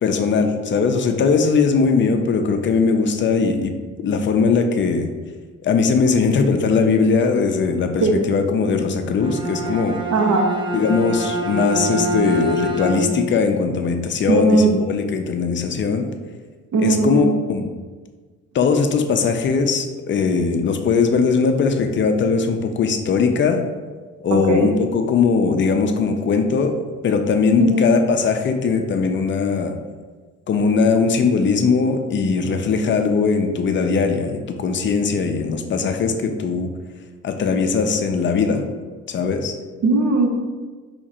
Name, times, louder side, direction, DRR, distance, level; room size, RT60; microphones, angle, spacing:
voice 1, 0.0-3.7 4.0-5.1 5.6-10.0 10.7-16.1 16.8-17.7 18.5-23.6 24.2-26.8 27.0-29.7 30.5-36.7 37.2-38.6 39.1-39.5, left 5 dB, 40° left, 5 dB, 0.4 m, -20 dB
Bowed string instrument, 9.1-13.4, equal, 15° right, 0.5 m, -25 dB
voice 2, 10.1-10.5 14.3-14.7 16.7-17.3 24.3-24.7 27.6-27.9 39.8-40.4, right 2 dB, 65° right, 2 dB, 0.7 m, -18 dB
2.9 x 2.4 x 4.1 m, 1.4 s
cardioid pair, 90°, 30 cm